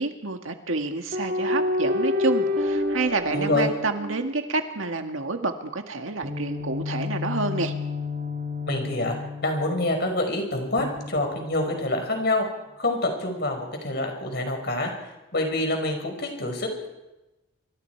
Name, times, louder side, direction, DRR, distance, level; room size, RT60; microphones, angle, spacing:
voice 1, 0.0-7.7, right 3 dB, 85° right, 5 dB, 1.9 m, -28 dB
sound 1, 1.1-4.8 6.2-10.0 10.8-12.0, left 2 dB, 45° right, 1.7 m, -29 dB
voice 2, 3.3-3.7 8.7-9.2 9.4-12.4 12.8-14.9 15.3-16.9, left 2 dB, 55° left, 3 dB, 5.3 m, -26 dB
26.0 x 25.5 x 4.7 m, 1.0 s
head